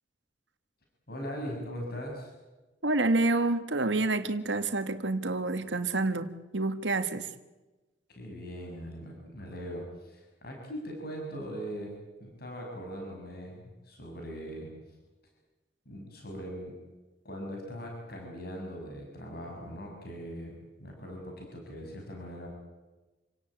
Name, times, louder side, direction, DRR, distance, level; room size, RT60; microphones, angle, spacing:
voice 1, 1.1-2.3 8.1-14.7 15.8-16.8 17.2-20.5 20.8-22.5, equal, 60° left, 6.7 m, -40 dB
voice 2, 2.8-7.3, right 2 dB, 90° right, 1.7 m, -28 dB
28.5 x 18.0 x 9.1 m
head